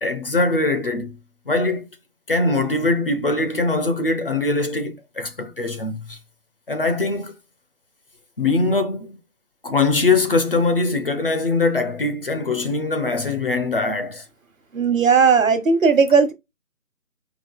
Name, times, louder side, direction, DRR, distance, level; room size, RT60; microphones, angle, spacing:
voice 1, 0.0-1.2 1.5-1.8 2.3-6.2 6.7-7.3 8.4-9.2 9.6-14.2, left 3 dB, 40° left, 0.6 m, -22 dB
voice 2, 14.7-16.3, right 5 dB, 60° right, 1.1 m, -16 dB
4.7 x 2.8 x 3.7 m
figure-of-eight pair, 160°, 44 cm